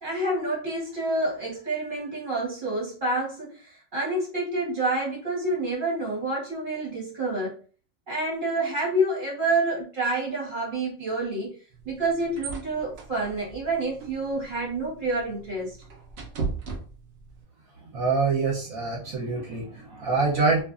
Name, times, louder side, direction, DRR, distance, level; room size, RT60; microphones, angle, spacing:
voice 1, 0.0-7.6 8.1-11.5 11.8-15.8, right 2 dB, 35° right, -5 dB, 1.0 m, -28 dB
sound 1, 11.7-17.4, right 4 dB, 85° right, 0.5 m, -38 dB
voice 2, 17.8-20.6, right 4 dB, 60° right, -3 dB, 1.0 m, -25 dB
2.6 x 2.5 x 2.4 m, 0.39 s
omnidirectional pair, 1.9 m